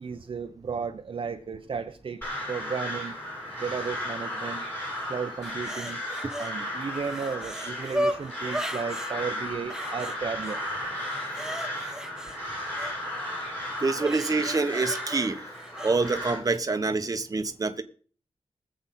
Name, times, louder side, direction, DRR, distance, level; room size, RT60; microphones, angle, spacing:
voice 1, 0.0-3.2 3.6-4.7 5.1-6.0 6.4-10.6, right 6 dB, 55° right, 6 dB, 0.7 m, -34 dB
Crow, 2.2-16.4, left 1 dB, 15° left, 7.1 m, -35 dB
sound 1, 5.4-6.5 6.9-9.1 9.7-10.6 10.9-12.9 13.9-15.9 16.4-16.6, equal, 5° right, 0.8 m, -35 dB
voice 2, 13.8-15.4 15.8-17.8, right 3 dB, 35° right, 8 dB, 1.0 m, -26 dB
20.5 x 7.7 x 4.2 m, 0.42 s
wide cardioid pair, 160°, 11 cm